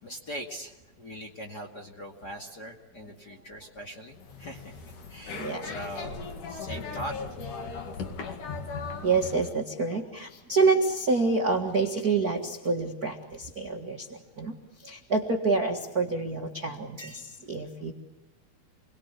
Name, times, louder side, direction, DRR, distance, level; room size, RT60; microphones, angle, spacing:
voice 1, 0.0-4.8 5.1-7.1, equal, 35° left, 1 dB, 2.1 m, -41 dB
sound 1, 4.1-9.5, left 4 dB, 60° left, 3.5 m, -38 dB
voice 2, 5.3-5.7 9.0-17.9, right 4 dB, 40° right, 1 dB, 1.4 m, -27 dB
29.0 x 22.5 x 8.3 m, 0.94 s
omnidirectional pair, 4.4 m